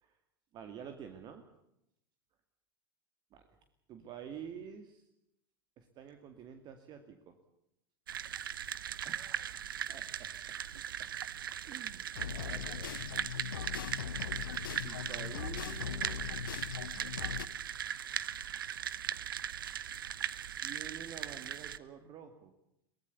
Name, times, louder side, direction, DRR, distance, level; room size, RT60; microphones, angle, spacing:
voice 1, 0.5-1.4 3.3-3.6 3.9-5.1 5.8-7.4 9.0-9.5 9.9-10.3 11.0-11.1 11.6-13.0 14.8-17.0 20.6-22.5, right 8 dB, 35° right, 7 dB, 2.2 m, -49 dB
sound 1, 8.1-21.8, right 9 dB, 70° right, 0.9 m, -39 dB
sound 2, 12.2-17.5, left 9 dB, 70° left, 0.9 m, -40 dB
23.5 x 18.5 x 8.4 m, 0.80 s
figure-of-eight pair, 85°, 12 cm